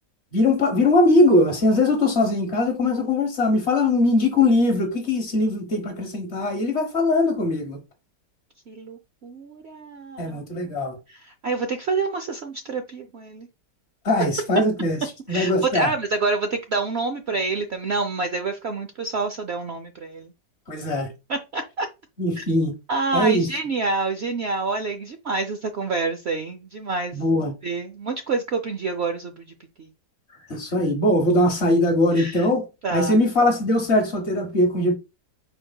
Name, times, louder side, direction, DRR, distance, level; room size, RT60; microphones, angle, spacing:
voice 1, 0.3-7.8 10.2-10.9 14.0-15.0 15.3-15.9 20.7-21.1 22.2-22.7 23.1-23.5 27.1-27.5 30.5-35.0, left 2 dB, 40° left, 1.3 m, -21 dB
voice 2, 8.7-10.7 11.1-13.5 15.3-20.3 21.3-21.9 22.4-22.5 22.9-27.2 27.6-29.5 29.8-29.9 32.2-32.5 32.8-33.1, right 3 dB, 85° right, 0.5 m, -27 dB
5.0 x 4.7 x 2.2 m
omnidirectional pair, 1.9 m